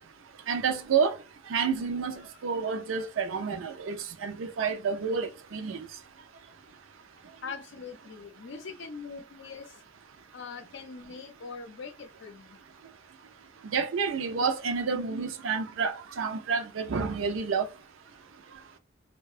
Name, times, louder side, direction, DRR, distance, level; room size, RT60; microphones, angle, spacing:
voice 1, 0.5-1.2 1.5-5.8 13.6-17.7, right 5 dB, 80° right, 0.4 m, -29 dB
voice 2, 7.4-9.8 10.3-12.6, left 5 dB, 65° left, 0.5 m, -42 dB
2.8 x 2.1 x 2.4 m
head